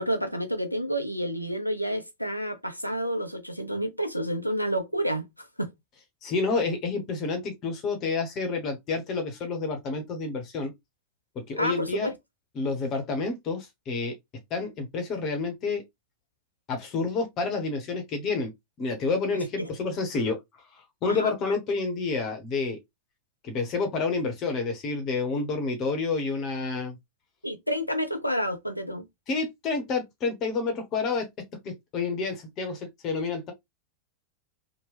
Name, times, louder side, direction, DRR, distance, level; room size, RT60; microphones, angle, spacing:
voice 1, 0.0-5.3 5.6-5.7 11.6-12.1 19.6-19.7 21.1-21.3 27.4-29.0, equal, 90° left, 0.5 m, -29 dB
voice 2, 6.2-10.7 11.5-12.1 12.6-14.1 14.5-15.8 16.7-18.5 18.8-22.8 23.4-27.0 29.3-31.3 31.6-33.5, left 4 dB, 35° left, 0.9 m, -29 dB
3.0 x 2.1 x 3.3 m
figure-of-eight pair, 90°, 0 cm